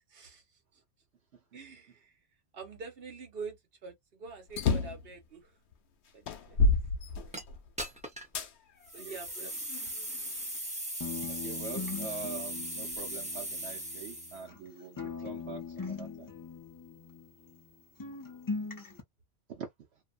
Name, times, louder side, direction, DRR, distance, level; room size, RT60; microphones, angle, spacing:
voice 1, 0.1-0.4 0.7-0.8 1.5-2.2 2.5-3.6 3.8-5.6 6.1-6.6 7.2-7.3 8.9-9.5 9.7-9.8 15.2-15.3, right 4 dB, 60° right, 1.2 m, -46 dB
sound 1, 4.5-5.1 5.7-5.8 6.3-7.7 8.3-8.5 9.2-10.3, left 3 dB, 85° left, 0.9 m, -28 dB
sound 2, 7.3-7.4 7.8-8.4 8.8-14.4, right 1 dB, 5° right, 0.8 m, -38 dB
voice 2, 9.0-9.5 11.4-16.3 19.6-19.7, right 6 dB, 75° right, 1.0 m, -44 dB
sound 3, 11.0-14.7 15.0-17.7 18.0-19.0, left 4 dB, 25° left, 0.5 m, -41 dB
2.8 x 2.2 x 2.4 m
omnidirectional pair, 1.1 m